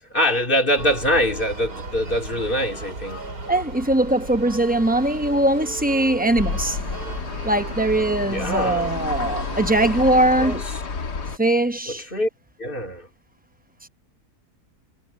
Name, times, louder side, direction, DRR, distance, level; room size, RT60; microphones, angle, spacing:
voice 1, 0.0-3.2 8.3-9.1 10.4-10.8 11.9-12.3 12.6-13.1, equal, 30° left, 3.5 m, -24 dB
sound 1, 0.8-10.6, right 2 dB, 85° right, 5.4 m, -36 dB
voice 2, 3.5-6.8 7.4-10.6 11.4-12.1, right 1 dB, 10° right, 0.5 m, -21 dB
sound 2, 6.4-11.4, left 4 dB, 85° left, 2.6 m, -30 dB
omnidirectional pair, 1.7 m